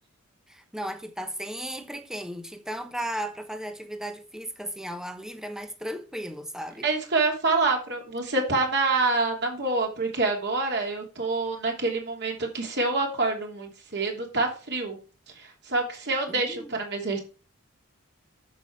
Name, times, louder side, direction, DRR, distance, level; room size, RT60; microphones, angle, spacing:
voice 1, 0.5-6.9 16.3-16.7, equal, ahead, 1.0 m, -35 dB
voice 2, 6.8-15.0 15.3-17.2, right 3 dB, 50° right, 3.0 m, -27 dB
9.5 x 7.0 x 4.7 m
head